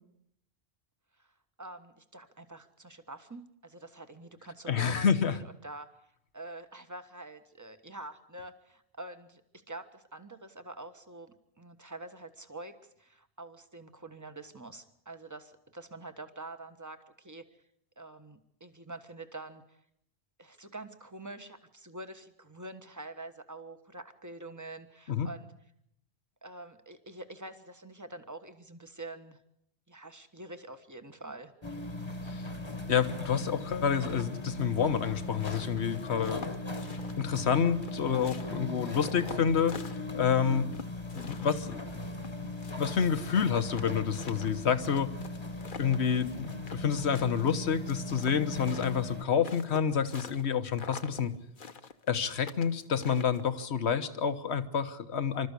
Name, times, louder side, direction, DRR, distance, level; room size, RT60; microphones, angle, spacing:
voice 1, 1.6-5.9 6.3-9.4 9.7-17.4 18.0-19.8 20.4-25.5 26.4-29.4 29.9-31.5, right 2 dB, 15° right, 9 dB, 1.3 m, -46 dB
voice 2, 4.7-5.4 25.1-25.3 32.3-32.4 32.9-36.5 37.2-40.7 41.1-41.8 42.4-42.5 42.8-45.1 45.8-51.3 52.1-55.5, left 7 dB, 75° left, 11 dB, 1.4 m, -28 dB
sound 1, 31.6-49.2, left 2 dB, 25° left, 1.4 m, -38 dB
sound 2, 35.4-37.5 37.8-40.3 40.7-43.0 43.2-43.3 43.5-46.9 47.1-50.5 50.7-51.3 51.6-53.6, left 5 dB, 50° left, 1.1 m, -46 dB
26.5 x 13.5 x 8.3 m, 0.74 s
omnidirectional pair, 1.1 m